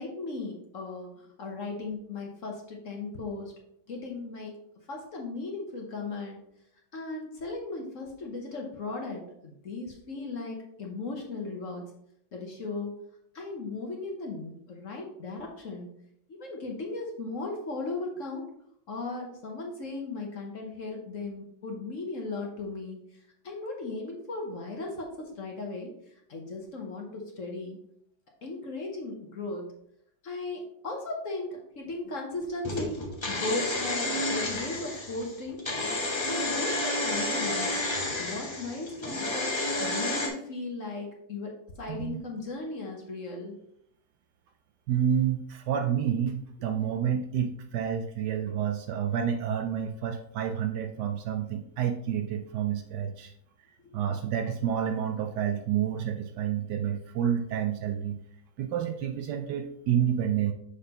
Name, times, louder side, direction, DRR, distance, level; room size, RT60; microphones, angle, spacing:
voice 1, 0.0-3.5 3.9-4.6 4.9-6.4 6.9-11.9 12.3-13.0 13.3-15.9 16.3-18.4 18.9-23.2 23.4-25.9 26.3-27.8 28.4-29.7 30.2-35.6 36.2-37.7 38.2-43.6 53.8-54.0, left 3 dB, 50° left, 1 dB, 1.1 m, -37 dB
sound 1, 32.6-40.3, left 2 dB, 25° left, 0.6 m, -30 dB
voice 2, 44.9-53.3 53.9-58.2 58.6-60.5, right 9 dB, 70° right, 5 dB, 1.1 m, -29 dB
6.7 x 5.6 x 2.9 m, 0.72 s
omnidirectional pair, 2.1 m